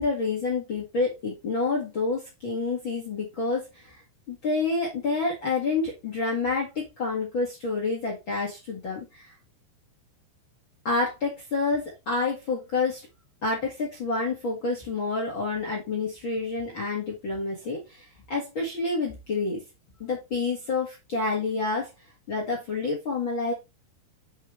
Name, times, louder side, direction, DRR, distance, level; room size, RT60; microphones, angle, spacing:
voice 1, 0.0-4.0 4.3-9.3 10.8-13.0 13.4-19.6 20.0-21.9 22.3-23.5, left 3 dB, 45° left, -1 dB, 1.5 m, -28 dB
7.6 x 5.7 x 3.1 m, 0.24 s
omnidirectional pair, 5.1 m